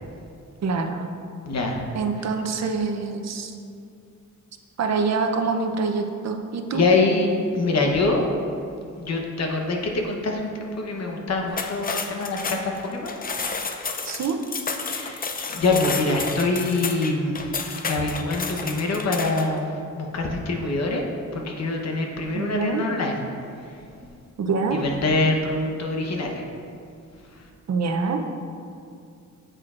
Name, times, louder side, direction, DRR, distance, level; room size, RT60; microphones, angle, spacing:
voice 1, 0.6-1.1 1.9-3.5 4.8-6.9 14.0-14.4 22.3-22.8 24.4-24.8 27.7-28.2, right 4 dB, 55° right, 4 dB, 0.6 m, -25 dB
voice 2, 1.5-1.9 6.7-8.2 9.0-13.1 14.9-17.6 17.9-21.0 21.3-23.2 23.7-24.1 24.7-26.4 27.3-27.4, left 3 dB, 55° left, 1 dB, 1.0 m, -25 dB
sound 1, 11.5-19.6, left 4 dB, 30° left, 0.4 m, -31 dB
8.9 x 7.7 x 2.5 m, 2.4 s
wide cardioid pair, 145°, 31 cm